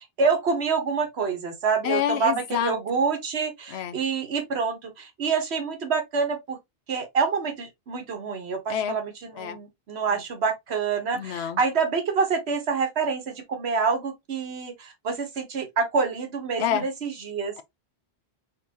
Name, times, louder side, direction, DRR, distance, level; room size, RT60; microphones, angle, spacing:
voice 1, 0.2-6.6 6.9-17.5, right 5 dB, 90° right, 1.4 m, -27 dB
voice 2, 1.8-2.8 3.7-4.0 8.7-9.0 9.4-9.6 10.1-10.2 11.1-11.6 16.6-16.9, left 10 dB, 85° left, 0.9 m, -28 dB
3.9 x 3.7 x 2.8 m
omnidirectional pair, 1.1 m